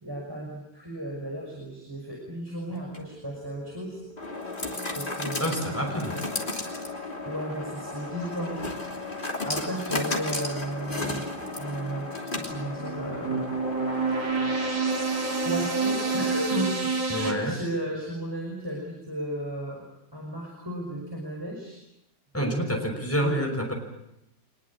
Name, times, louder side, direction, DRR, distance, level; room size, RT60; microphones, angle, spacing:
voice 1, 0.0-4.0 5.0-6.3 7.2-13.5 15.1-19.8 20.1-21.8 23.2-23.5, right 1 dB, 10° right, -1 dB, 5.8 m, -35 dB
sound 1, 2.8-16.7, left 2 dB, 25° left, 3.3 m, -35 dB
voice 2, 5.4-6.1 17.1-17.6 22.3-23.7, equal, 5° left, 2 dB, 5.7 m, -27 dB
sound 2, 12.5-17.3, right 4 dB, 85° right, 4.4 m, -28 dB
25.0 x 21.0 x 8.5 m, 0.84 s
omnidirectional pair, 2.0 m